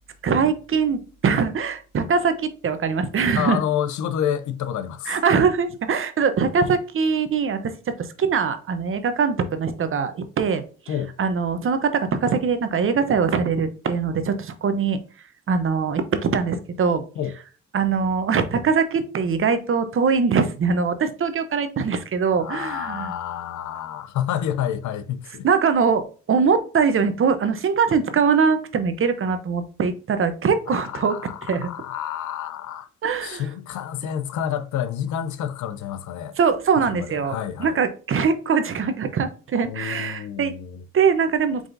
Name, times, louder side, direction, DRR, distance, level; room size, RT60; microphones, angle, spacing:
voice 1, 0.2-3.6 5.1-15.0 15.5-17.0 17.7-23.1 25.4-31.2 31.4-31.7 33.0-33.5 36.4-40.5 40.9-41.7, right 5 dB, 45° right, 0.7 m, -22 dB
voice 2, 3.3-5.2 10.9-11.1 17.2-17.3 22.4-25.5 30.7-32.9 33.2-36.3 36.9-37.8 39.6-40.8, left 10 dB, 75° left, 0.6 m, -29 dB
4.9 x 3.8 x 2.6 m
cardioid pair, 90°, 30 cm